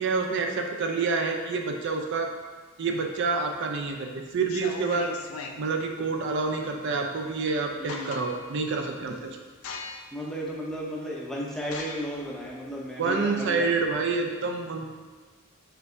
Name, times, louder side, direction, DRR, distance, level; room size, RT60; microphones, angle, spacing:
voice 1, 0.0-2.3 2.8-5.1 5.6-9.4 13.0-14.9, right 4 dB, 55° right, 3 dB, 0.4 m, -28 dB
sound 1, 3.4-3.9 4.4-5.6 7.2-7.3 7.6-8.6 9.0-9.2 9.6-10.2 10.7-10.8 11.6-13.9, left 4 dB, 75° left, 0.4 m, -39 dB
voice 2, 7.8-8.1 10.1-13.7, equal, ahead, -5 dB, 0.6 m, -34 dB
4.5 x 3.4 x 2.6 m, 1.5 s
head